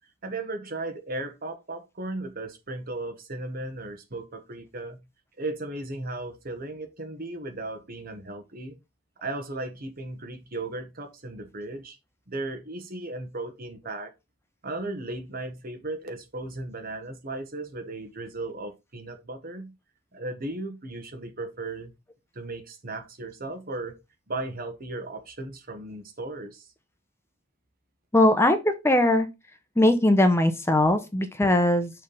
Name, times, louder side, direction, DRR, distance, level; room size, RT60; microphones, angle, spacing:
voice 1, 0.2-5.0 5.4-8.8 9.2-12.0 12.3-14.1 14.6-19.7 20.1-21.9 22.3-24.0 24.3-26.7, right 2 dB, 50° right, 1.3 m, -36 dB
voice 2, 28.1-29.3 29.8-31.9, left 1 dB, 15° left, 0.7 m, -20 dB
6.4 x 3.3 x 5.5 m
head